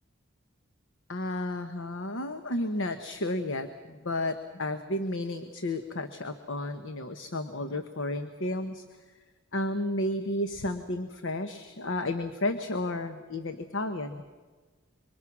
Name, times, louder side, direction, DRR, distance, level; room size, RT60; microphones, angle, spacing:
voice 1, 1.1-8.8 9.5-14.2, left 1 dB, 70° left, 8 dB, 1.1 m, -32 dB
26.5 x 23.5 x 6.1 m, 1.4 s
head